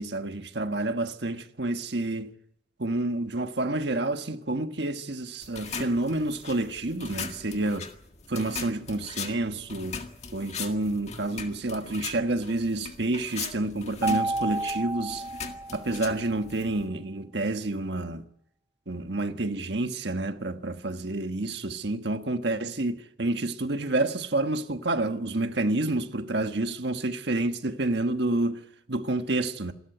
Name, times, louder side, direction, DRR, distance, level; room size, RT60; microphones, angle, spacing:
voice 1, 0.0-2.3 2.8-7.9 8.3-10.0 10.3-15.3 15.7-18.2 18.9-29.7, right 2 dB, 65° right, 1.4 m, -29 dB
sound 1, 5.4-16.9, left 5 dB, 35° left, 1.8 m, -40 dB
Mallet percussion, 14.0-16.3, right 2 dB, 15° right, 0.8 m, -31 dB
27.5 x 13.0 x 9.2 m
head